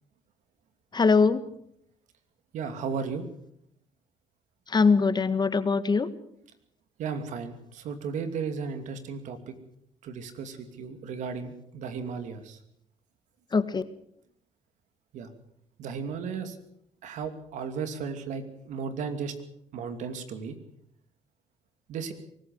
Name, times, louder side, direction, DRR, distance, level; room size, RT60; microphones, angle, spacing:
voice 1, 0.9-1.4 4.7-6.1 13.5-13.8, left 4 dB, 35° left, 13 dB, 1.7 m, -22 dB
voice 2, 2.5-3.3 7.0-9.5 10.0-12.6 15.1-15.3 15.8-16.6 17.0-19.3 19.7-20.6 21.9-22.1, right 6 dB, 75° right, 8 dB, 2.7 m, -35 dB
24.0 x 14.5 x 7.9 m, 0.73 s
supercardioid pair, 70°, 13 cm